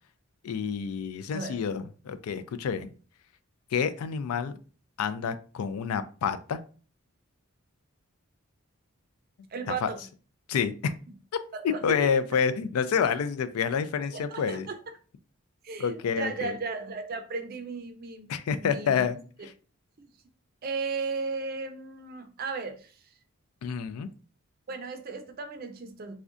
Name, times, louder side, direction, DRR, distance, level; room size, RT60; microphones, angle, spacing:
voice 1, 0.4-2.9 3.7-4.6 5.0-6.6 9.8-9.9 10.5-10.9 11.6-14.7 15.8-16.6 18.3-19.2 23.6-24.1, left 6 dB, 90° left, 12 dB, 0.3 m, -28 dB
voice 2, 9.5-10.0 11.5-12.1 14.1-15.0 15.6-18.3 18.6-19.0 20.0-20.1 20.6-23.0 24.7-26.1, right 4 dB, 45° right, 6 dB, 0.4 m, -35 dB
3.6 x 2.2 x 2.4 m, 0.39 s
head